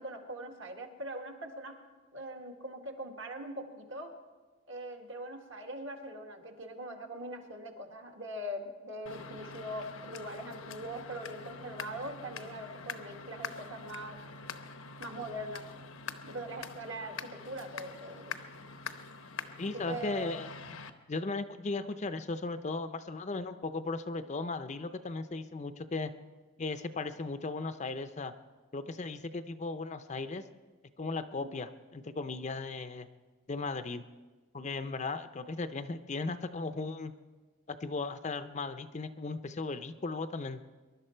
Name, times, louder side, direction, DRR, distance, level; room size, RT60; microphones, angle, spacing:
voice 1, 0.0-1.8 2.1-4.1 4.7-14.3 15.0-15.7 16.2-18.4 19.7-20.3 31.4-31.5, right 1 dB, 60° right, 3 dB, 1.7 m, -42 dB
sound 1, 9.1-20.9, left 5 dB, 80° left, 0.8 m, -45 dB
voice 2, 19.6-20.5 21.1-26.1 26.6-28.3 28.7-30.4 31.0-33.1 33.5-34.0 34.5-37.1 37.7-40.6, left 3 dB, 35° left, 10 dB, 0.5 m, -36 dB
23.0 x 11.5 x 4.4 m, 1.3 s
head